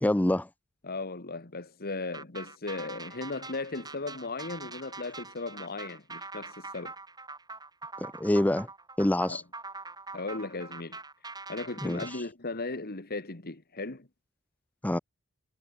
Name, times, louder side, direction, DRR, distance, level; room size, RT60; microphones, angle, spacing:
voice 1, 0.0-0.5 8.0-8.7 9.0-9.4 11.8-12.0 14.8-15.0, left 1 dB, 5° left, 0.4 m, -26 dB
voice 2, 0.8-6.9 9.3-9.4 10.1-11.0 11.5-14.1, left 3 dB, 45° left, 1.9 m, -37 dB
sound 1, 2.1-12.2, right 3 dB, 20° right, 5.6 m, -44 dB
head